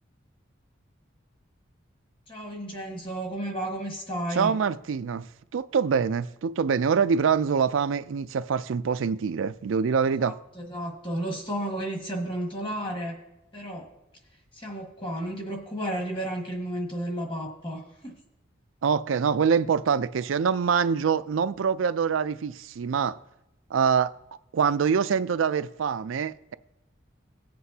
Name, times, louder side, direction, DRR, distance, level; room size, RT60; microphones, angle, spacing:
voice 1, 2.3-4.5 10.2-13.2 13.5-13.9 14.5-18.1, right 1 dB, 25° left, 1.7 m, -33 dB
voice 2, 4.3-5.3 5.5-10.4 18.8-23.2 23.7-24.1 24.5-26.5, right 6 dB, 85° right, 0.4 m, -25 dB
18.0 x 7.8 x 2.8 m
head